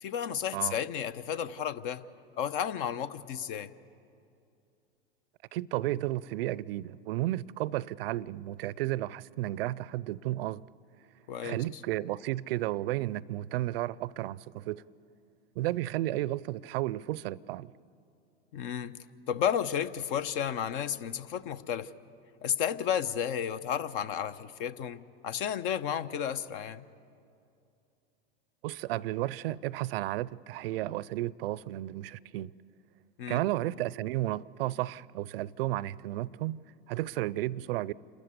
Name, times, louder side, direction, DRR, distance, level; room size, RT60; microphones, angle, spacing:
voice 1, 0.0-2.0 2.4-3.7 11.3-11.6 18.5-19.0 19.3-21.9 22.4-26.8 33.2-33.4, left 9 dB, 55° left, 0.8 m, -32 dB
voice 2, 5.5-10.6 11.4-14.8 15.6-17.7 28.6-32.5 33.3-37.9, right 15 dB, 65° right, 0.5 m, -33 dB
28.0 x 13.5 x 8.2 m
hypercardioid pair, 100°, 31 cm